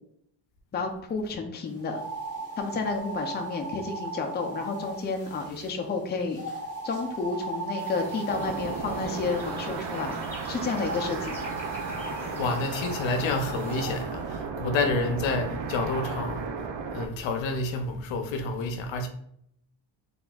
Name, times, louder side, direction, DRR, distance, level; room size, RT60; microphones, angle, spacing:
voice 1, 0.7-2.0 2.6-6.4 6.8-10.2 10.5-11.3, left 4 dB, 25° left, 0.5 m, -31 dB
sound 1, 1.8-5.7 6.3-9.6 10.7-13.9, right 3 dB, 30° right, 1.1 m, -37 dB
sound 2, 7.8-14.0, equal, 5° left, 1.4 m, -44 dB
sound 3, 8.3-17.1, right 5 dB, 65° right, 0.6 m, -34 dB
voice 2, 12.3-16.4 16.9-19.1, left 3 dB, 75° left, 0.7 m, -29 dB
4.0 x 3.4 x 2.3 m
cardioid pair, 130°, 46 cm